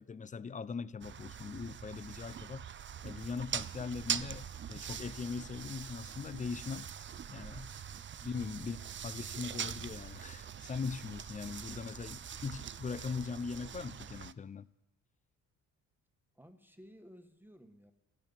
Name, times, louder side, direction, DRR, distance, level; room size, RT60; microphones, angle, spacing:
voice 1, 0.0-2.7 3.0-6.9 7.3-7.7 8.2-8.8 9.0-14.7, left 5 dB, 20° left, 0.5 m, -40 dB
sound 1, 1.0-14.3, right 8 dB, 35° right, 0.6 m, -43 dB
voice 2, 16.3-17.9, right 1 dB, 5° right, 1.3 m, -56 dB
14.5 x 9.6 x 9.3 m
cardioid pair, 100°, 35 cm